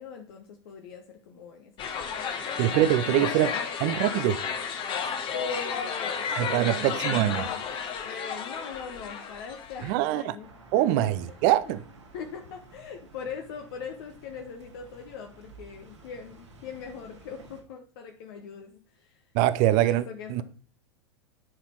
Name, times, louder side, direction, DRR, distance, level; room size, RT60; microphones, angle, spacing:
voice 1, 0.0-3.7 5.3-7.6 7.9-11.7 12.1-19.3 19.7-20.4, left 5 dB, 50° left, 1.1 m, -41 dB
sound 1, 1.8-9.9, left 6 dB, 35° left, 1.3 m, -32 dB
voice 2, 2.6-4.4 6.4-7.5 9.8-10.3 10.7-11.8 19.3-20.0 20.3-20.4, right 13 dB, 45° right, 0.6 m, -24 dB
sound 2, 10.4-17.6, right 2 dB, 75° right, 2.4 m, -52 dB
10.0 x 4.3 x 4.5 m
figure-of-eight pair, 90°, 15 cm